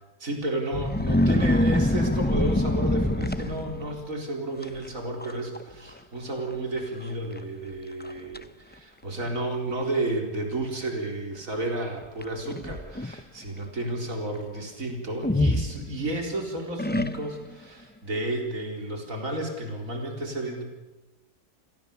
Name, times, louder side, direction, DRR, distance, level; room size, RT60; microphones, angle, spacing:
voice 1, 0.2-20.6, right 1 dB, 55° right, 1 dB, 4.7 m, -32 dB
sound 1, 0.7-4.0 4.6-4.9 5.2-5.6 5.9-6.0 6.8-6.9 7.4-7.5 8.0-8.4 9.3-9.4 12.2-13.2 15.2-16.3 16.8-17.5, left 1 dB, 10° left, 0.5 m, -25 dB
29.5 x 21.5 x 7.1 m, 1.0 s
omnidirectional pair, 1.6 m